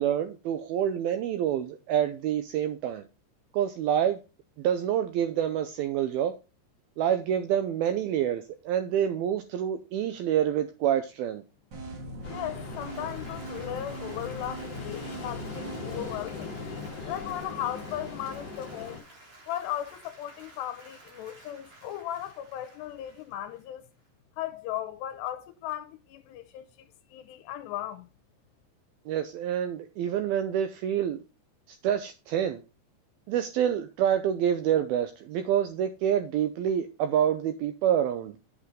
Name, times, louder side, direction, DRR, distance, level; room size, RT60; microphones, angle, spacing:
voice 1, 0.0-3.0 3.5-4.2 4.6-6.3 7.0-11.4 29.1-31.2 31.7-32.6 33.3-38.4, right 9 dB, 85° right, 2.2 m, -27 dB
sound 1, 11.7-16.1, right 1 dB, 65° right, 1.1 m, -40 dB
Ocean, 12.2-19.0, left 4 dB, 40° left, 1.6 m, -40 dB
voice 2, 12.3-16.5 17.1-19.0 19.5-23.9 24.4-28.1, left 12 dB, 80° left, 2.7 m, -37 dB
Applause, 12.4-24.1, right 2 dB, 35° right, 4.7 m, -53 dB
8.6 x 8.4 x 3.7 m
omnidirectional pair, 5.1 m